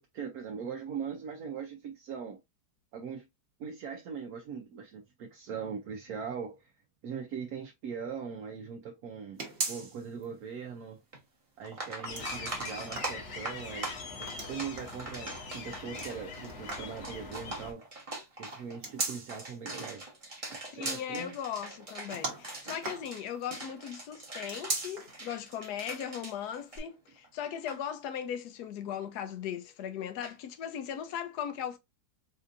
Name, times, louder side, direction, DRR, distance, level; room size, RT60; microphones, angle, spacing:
voice 1, 0.0-2.4 2.9-3.3 3.6-6.7 7.0-9.4 9.7-11.0 11.6-13.9 14.2-17.8 18.3-20.1 20.5-21.3, right 6 dB, 70° right, 1.0 m, -40 dB
sound 1, 9.4-10.2 10.6-10.7 11.9-13.7 14.2-15.0 16.0-17.0 18.5-19.5 22.1-23.6 24.4-25.2 25.6-25.7 26.7-26.8, right 3 dB, 45° right, 1.3 m, -39 dB
sound 2, 11.1-11.2 11.6-27.3 27.5-27.8 30.2-30.3, right 2 dB, 25° right, 0.9 m, -42 dB
sound 3, 12.0-17.7, left 4 dB, 50° left, 1.0 m, -42 dB
voice 2, 20.7-31.8, left 9 dB, 75° left, 1.1 m, -38 dB
4.3 x 2.6 x 2.5 m
omnidirectional pair, 1.8 m